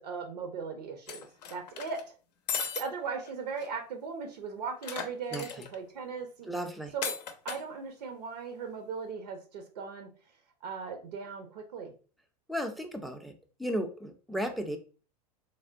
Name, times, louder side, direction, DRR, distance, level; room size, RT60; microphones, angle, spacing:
voice 1, 0.0-2.1 2.7-6.5 6.9-7.1 7.4-10.1 10.6-11.9, right 5 dB, 80° right, 4 dB, 0.7 m, -38 dB
sound 1, 1.1-2.0 2.5-2.8 3.3-3.4 3.6-3.7 4.8-5.8 7.0-7.6, left 6 dB, 85° left, 0.5 m, -36 dB
voice 2, 5.3-5.7 6.5-6.9 12.5-13.3 13.6-14.8, equal, ahead, 6 dB, 0.4 m, -34 dB
3.4 x 2.1 x 2.5 m, 0.37 s
hypercardioid pair, 100°, 21 cm